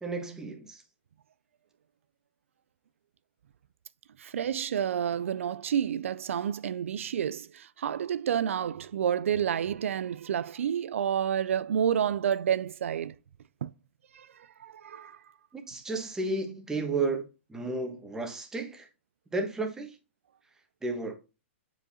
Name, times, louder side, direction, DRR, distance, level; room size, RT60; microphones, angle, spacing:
voice 1, 0.0-0.8 15.7-18.9 19.3-19.9 20.8-21.1, right 3 dB, 10° right, 1.2 m, -32 dB
voice 2, 4.2-13.1 13.6-13.7 14.1-14.3 14.6-15.2, right 9 dB, 85° right, 0.3 m, -29 dB
7.7 x 4.9 x 2.8 m
hypercardioid pair, 145°, 7 cm